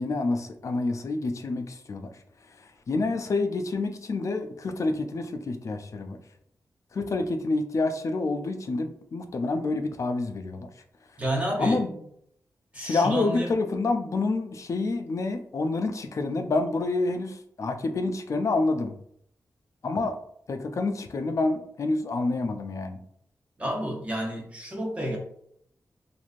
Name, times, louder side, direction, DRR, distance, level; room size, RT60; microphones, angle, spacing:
voice 1, 0.0-2.1 2.9-6.2 6.9-10.7 11.6-11.9 12.8-18.9 19.8-20.2 20.5-23.0, left 3 dB, 55° left, 7 dB, 0.4 m, -28 dB
voice 2, 11.2-11.8 12.7-13.5 23.6-25.2, right 1 dB, 20° right, -1 dB, 0.8 m, -30 dB
3.1 x 2.6 x 2.4 m, 0.69 s
wide cardioid pair, 90°, 6 cm